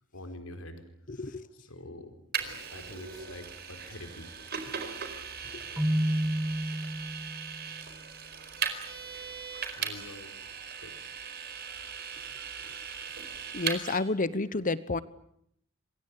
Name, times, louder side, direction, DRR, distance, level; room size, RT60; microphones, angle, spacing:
voice 1, 0.1-0.8 1.1-4.3 5.4-5.9 9.8-10.3 10.7-11.0 12.5-12.7, left 1 dB, 75° left, 8 dB, 4.6 m, -47 dB
voice 2, 1.1-1.4 13.5-15.0, left 3 dB, 40° left, 16 dB, 1.1 m, -30 dB
Vehicle, 2.3-14.0, right 7 dB, 50° right, 4.6 m, -38 dB
Keyboard (musical), 5.8-7.6, right 1 dB, 10° right, 1.7 m, -30 dB
27.5 x 23.5 x 8.6 m, 0.73 s
head